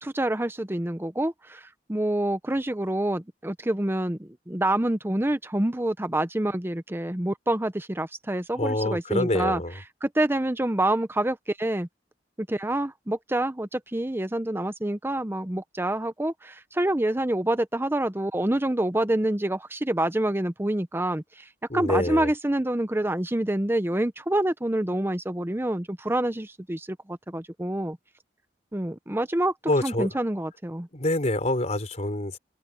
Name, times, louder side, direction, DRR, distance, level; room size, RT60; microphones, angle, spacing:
voice 1, 0.0-9.6 10.0-11.9 12.4-21.5 21.7-28.0 28.7-29.5 29.8-30.9, right 1 dB, 15° right, 0.8 m, -27 dB
voice 2, 8.6-9.7 21.7-22.3 29.7-30.1 30.9-32.4, left 1 dB, 40° left, 3.8 m, -26 dB
head